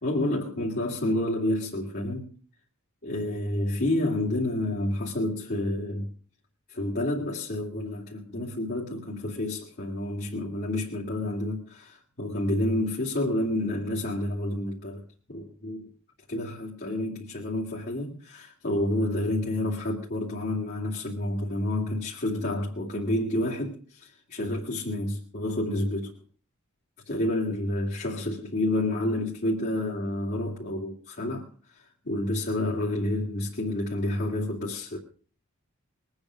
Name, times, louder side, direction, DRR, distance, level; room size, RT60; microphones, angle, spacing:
voice 1, 0.0-2.3 3.0-6.1 6.7-15.0 15.3-15.8 16.3-26.1 27.1-35.0, left 1 dB, 45° left, 2.7 m, -29 dB
22.0 x 8.9 x 6.4 m
head